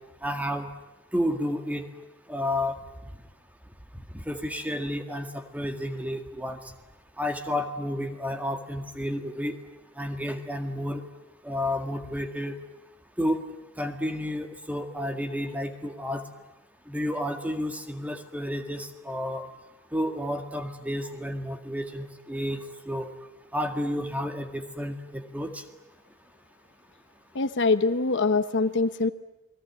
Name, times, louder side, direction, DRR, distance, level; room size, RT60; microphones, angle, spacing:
voice 1, 0.2-0.7 1.1-1.8 2.3-2.8 3.9-6.6 7.2-9.6 10.0-11.0 11.4-12.6 13.2-13.4 13.8-16.2 16.9-19.5 19.9-23.1 23.5-25.6, left 1 dB, 5° right, 6 dB, 1.9 m, -31 dB
voice 2, 27.3-29.1, left 3 dB, 55° left, 11 dB, 0.9 m, -24 dB
29.0 x 21.0 x 9.6 m, 1.0 s
head